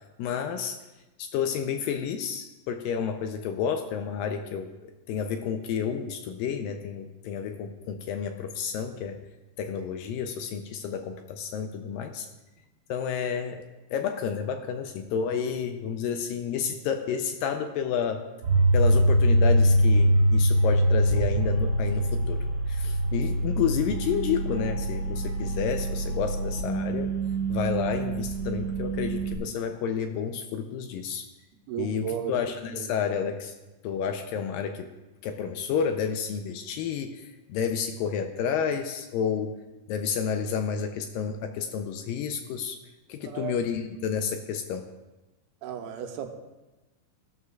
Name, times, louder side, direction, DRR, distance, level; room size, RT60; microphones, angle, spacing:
voice 1, 0.2-0.8 1.2-4.7 5.1-9.2 9.6-12.3 12.9-13.6 13.9-18.2 18.7-22.4 22.7-27.1 27.5-31.3 31.8-33.5 33.8-34.9 35.2-39.5 39.9-42.8 43.1-44.9, left 7 dB, 80° left, 6 dB, 2.1 m, -30 dB
sound 1, 18.4-29.3, right 1 dB, 50° right, 2.1 m, -24 dB
voice 2, 31.7-32.4 32.7-32.9 43.2-43.6 45.6-46.3, right 9 dB, 85° right, 4 dB, 2.8 m, -34 dB
14.5 x 12.0 x 2.3 m, 1.1 s
omnidirectional pair, 4.4 m